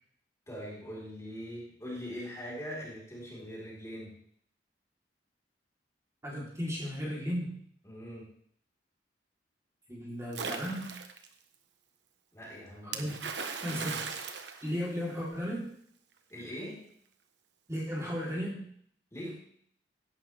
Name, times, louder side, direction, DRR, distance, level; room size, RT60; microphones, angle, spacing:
voice 1, 0.5-4.2 7.8-8.3 12.3-13.2 16.3-16.9 19.1-19.3, equal, 15° left, -5 dB, 4.3 m, -42 dB
voice 2, 6.2-7.5 9.9-10.9 12.9-13.2 13.6-14.0 14.6-15.7 17.7-18.6, equal, 15° right, -5 dB, 3.6 m, -35 dB
Splash splatter, 10.3-11.3 12.9-15.4, right 5 dB, 75° right, 1.2 m, -38 dB
16.5 x 11.0 x 3.5 m, 0.64 s
head